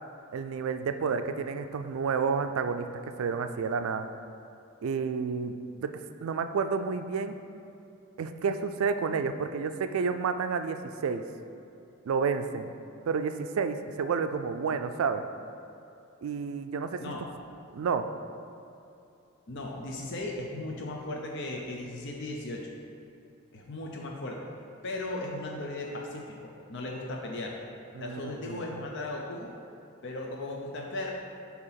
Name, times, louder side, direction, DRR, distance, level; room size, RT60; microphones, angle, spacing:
voice 1, 0.3-4.1 4.8-5.9 6.2-7.3 8.2-11.2 12.1-12.7 13.1-15.3 16.2-17.0 17.7-18.1 27.9-28.6, right 5 dB, 85° right, 9 dB, 0.4 m, -30 dB
voice 2, 19.5-22.6 23.5-24.4 24.8-27.5 28.0-29.5 30.0-31.1, left 2 dB, 60° left, -1 dB, 0.6 m, -36 dB
7.7 x 2.9 x 5.7 m, 2.7 s
head